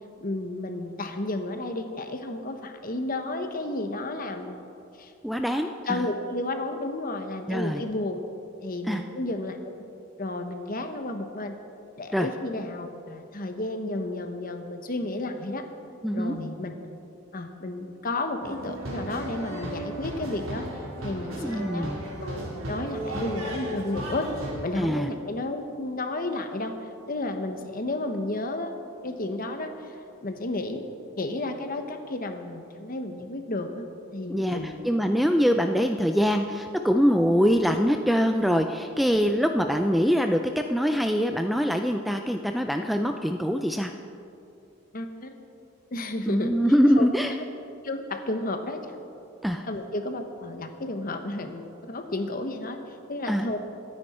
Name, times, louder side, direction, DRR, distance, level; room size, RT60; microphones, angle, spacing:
voice 1, 0.2-4.6 5.0-5.1 5.9-8.2 8.6-9.6 10.2-11.5 12.0-15.6 16.1-16.7 17.3-20.7 21.0-21.9 22.2-24.3 24.6-26.7 27.1-28.8 29.0-29.9 30.2-30.8 31.2-33.9 34.1-34.7 44.9-45.3 45.9-46.5 47.0-47.1 47.8-49.0 49.6-53.6, left 2 dB, 40° left, 6 dB, 1.1 m, -32 dB
voice 2, 5.2-6.1 7.5-7.8 8.9-9.0 12.1-12.3 16.0-16.3 21.4-22.0 24.8-25.1 34.3-43.9 46.3-47.3 49.4-49.7 53.3-53.5, equal, ahead, 5 dB, 0.4 m, -24 dB
sound 1, 18.4-24.5, right 1 dB, 70° right, 4.0 m, -35 dB
24.5 x 9.8 x 4.3 m, 2.6 s
head